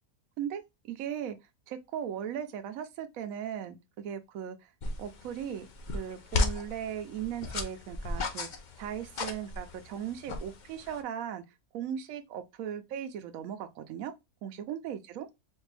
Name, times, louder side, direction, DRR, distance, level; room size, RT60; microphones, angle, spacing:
voice 1, 0.4-1.4 1.7-4.7 5.0-5.7 5.9-8.5 8.8-11.4 11.7-14.1 14.4-15.3, right 9 dB, 75° right, 1.0 m, -38 dB
sound 1, 4.8-11.0, left 3 dB, 55° left, 0.5 m, -35 dB
4.3 x 2.5 x 3.2 m
omnidirectional pair, 1.5 m